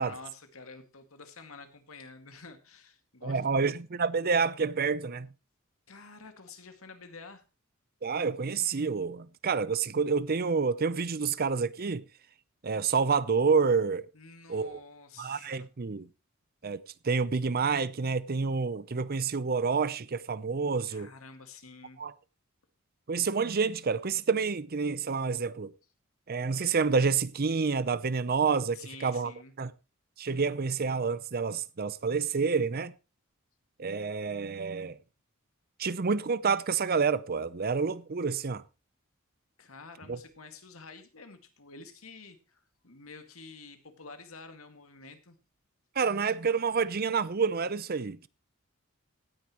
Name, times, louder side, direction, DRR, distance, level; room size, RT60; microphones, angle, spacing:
voice 1, 0.0-3.7 5.9-7.4 14.1-15.7 20.9-22.0 28.7-29.5 39.6-45.4, left 4 dB, 80° left, 2.1 m, -49 dB
voice 2, 3.2-5.3 8.0-12.0 12.6-14.1 14.5-14.8 15.2-16.1 16.6-21.1 22.0-22.1 23.1-25.7 26.3-29.3 29.6-29.7 30.2-32.9 33.8-35.0 35.8-38.6 40.1-40.2 46.0-48.3, right 5 dB, 45° right, 0.6 m, -28 dB
17.0 x 9.8 x 3.0 m
head